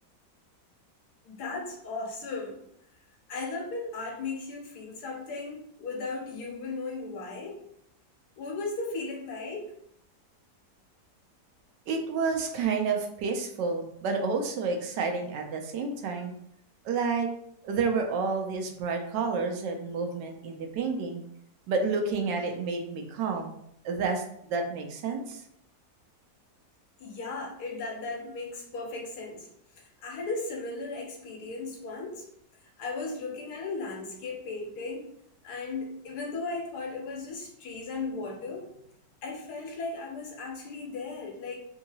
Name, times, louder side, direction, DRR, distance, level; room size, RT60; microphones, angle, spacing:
voice 1, 1.3-2.6 3.3-7.6 8.4-9.6 27.0-29.5 30.0-32.2 32.8-35.1 35.4-38.7 39.2-41.7, left 3 dB, 70° left, 0 dB, 1.3 m, -36 dB
voice 2, 11.9-16.3 16.8-17.3 17.6-21.2 21.7-23.5 23.8-25.4, right 4 dB, 85° right, 3 dB, 1.3 m, -30 dB
3.5 x 2.8 x 2.8 m, 0.72 s
omnidirectional pair, 1.8 m